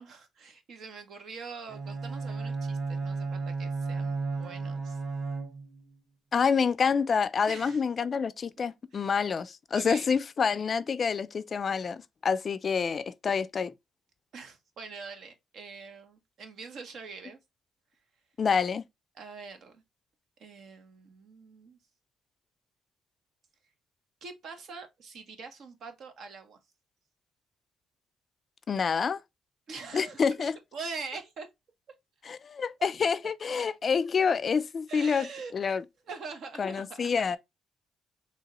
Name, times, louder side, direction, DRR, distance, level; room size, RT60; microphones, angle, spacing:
voice 1, 0.0-5.0 7.5-7.8 8.9-9.1 9.7-10.1 14.3-17.4 19.1-19.8 20.4-21.8 24.2-26.6 29.7-31.5 32.8-32.9 34.9-35.5 36.1-37.0, right 4 dB, 65° right, 0.9 m, -43 dB
Bowed string instrument, 1.7-5.9, right 4 dB, 40° right, 0.9 m, -33 dB
voice 2, 6.3-13.7 18.4-18.8 28.7-29.2 29.9-30.5 32.3-35.3 35.5-35.8 36.6-37.4, left 6 dB, 45° left, 0.3 m, -27 dB
3.7 x 2.8 x 3.0 m
cardioid pair, 90°, 0 cm